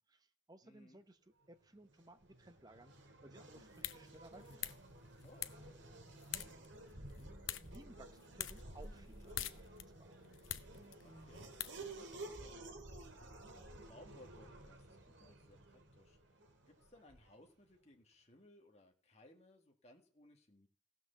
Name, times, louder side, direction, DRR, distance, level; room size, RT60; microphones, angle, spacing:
voice 1, 0.1-1.2 1.5-4.8 6.9-10.2, right 1 dB, 20° right, 9 dB, 1.0 m, -60 dB
voice 2, 0.6-1.0 5.2-5.8 11.0-13.3 13.7-16.2 16.6-20.7, left 1 dB, 30° left, 2 dB, 1.7 m, -63 dB
Race car auto racing / Accelerating revving vroom, 1.8-17.5, right 2 dB, 60° right, 2.3 m, -53 dB
sound 1, 3.5-12.4, left 12 dB, 75° left, 0.8 m, -49 dB
15.5 x 6.1 x 6.9 m, 0.42 s
head